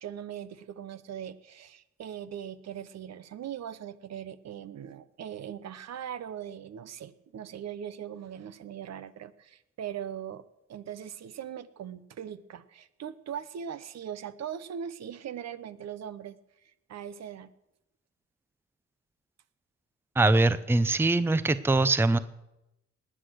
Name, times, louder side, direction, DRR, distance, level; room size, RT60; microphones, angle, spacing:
voice 1, 0.0-17.5, right 9 dB, 60° right, 14 dB, 0.9 m, -40 dB
voice 2, 20.2-22.2, right 2 dB, 10° right, 14 dB, 0.6 m, -23 dB
19.5 x 8.6 x 6.3 m, 0.88 s
cardioid pair, 90°, 30 cm